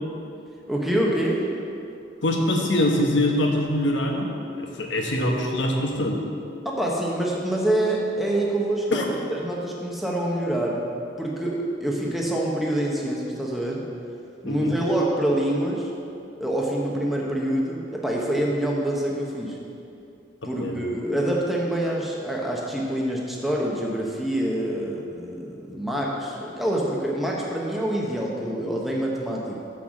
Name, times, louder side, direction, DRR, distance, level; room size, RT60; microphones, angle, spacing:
voice 1, 0.7-1.5 6.6-10.9 11.2-13.8 14.4-15.9 16.4-19.6 20.4-29.6, right 1 dB, ahead, -3 dB, 1.0 m, -26 dB
voice 2, 2.2-6.2 8.9-9.0 14.4-14.7 20.6-20.9, left 1 dB, 85° left, 1 dB, 1.2 m, -24 dB
6.8 x 6.2 x 7.2 m, 2.6 s
head